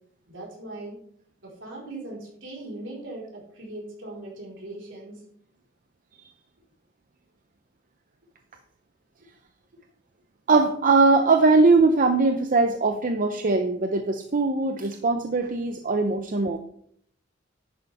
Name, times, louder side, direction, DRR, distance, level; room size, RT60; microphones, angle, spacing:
voice 1, 0.3-1.0 1.4-5.2, right 2 dB, 70° right, -3 dB, 4.4 m, -39 dB
voice 2, 10.5-16.6, right 3 dB, 45° right, 6 dB, 0.7 m, -21 dB
11.0 x 9.4 x 3.5 m, 0.65 s
head